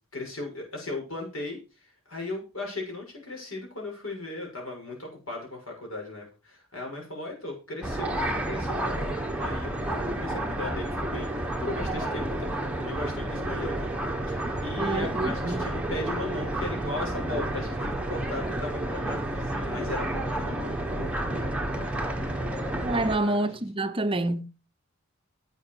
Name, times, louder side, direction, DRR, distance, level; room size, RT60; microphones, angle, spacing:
voice 1, 0.1-12.5 12.8-13.9 14.3-21.9 23.1-23.6, left 2 dB, 85° left, 6.6 m, -37 dB
sound 1, 7.8-23.2, right 1 dB, 5° right, 1.4 m, -30 dB
voice 2, 14.8-15.6 22.8-24.5, right 2 dB, 25° right, 0.8 m, -27 dB
11.5 x 8.2 x 4.8 m
head